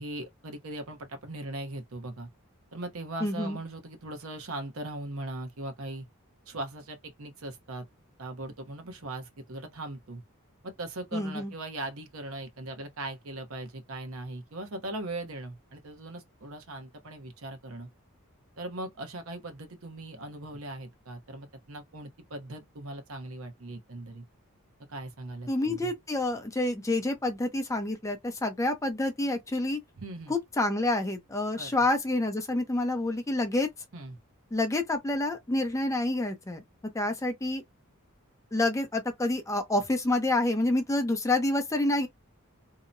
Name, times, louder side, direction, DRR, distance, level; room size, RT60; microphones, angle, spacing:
voice 1, 0.0-2.3 2.7-6.1 6.5-7.9 8.2-10.2 10.6-17.9 18.6-24.2 24.9-25.9 30.0-30.3 31.6-31.8 33.9-34.2, right 2 dB, 70° right, 0.8 m, -39 dB
voice 2, 3.2-3.6 11.1-11.5 25.5-29.8 30.3-33.7 34.5-36.6 36.9-37.6 38.5-42.1, left 2 dB, 15° left, 0.5 m, -28 dB
2.8 x 2.1 x 2.5 m
head